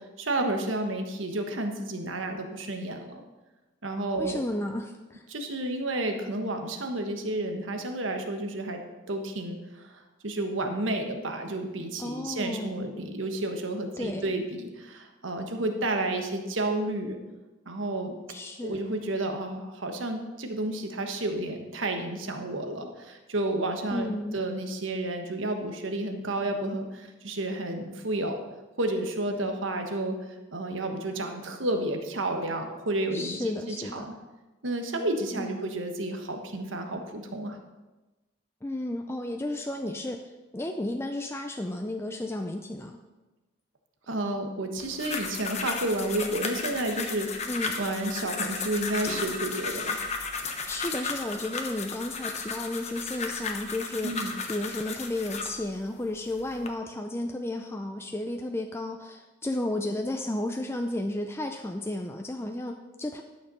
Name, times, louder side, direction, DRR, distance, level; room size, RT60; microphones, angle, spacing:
voice 1, 0.2-3.2 3.8-4.4 5.3-8.8 9.1-9.8 10.2-17.2 17.7-18.1 18.6-28.4 28.8-30.2 30.5-33.4 33.7-34.2 34.6-37.6 44.1-47.5 47.8-50.0 54.0-54.3, right 1 dB, 75° right, 5 dB, 1.3 m, -31 dB
voice 2, 4.2-5.2 12.0-12.7 14.0-14.3 18.3-18.8 23.9-24.4 33.1-34.1 35.3-35.6 38.6-40.2 40.5-43.0 47.5-47.8 50.7-54.1 54.5-63.2, left 1 dB, 15° left, 4 dB, 0.5 m, -33 dB
sound 1, 44.8-55.6 56.2-56.7, left 4 dB, 35° left, 1.0 m, -34 dB
11.5 x 6.7 x 5.5 m, 1.1 s
head